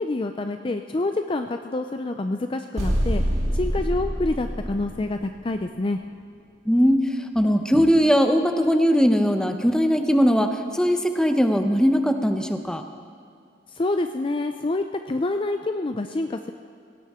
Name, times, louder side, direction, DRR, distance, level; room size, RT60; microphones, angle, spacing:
voice 1, 0.0-3.2 3.5-6.0 13.7-16.5, left 2 dB, 30° left, 7 dB, 0.5 m, -27 dB
sound 1, 2.8-5.5, equal, 40° right, 2.7 m, -26 dB
voice 2, 6.7-7.0 7.3-12.8, equal, 5° left, 6 dB, 0.8 m, -20 dB
18.0 x 17.5 x 3.7 m, 2.4 s
head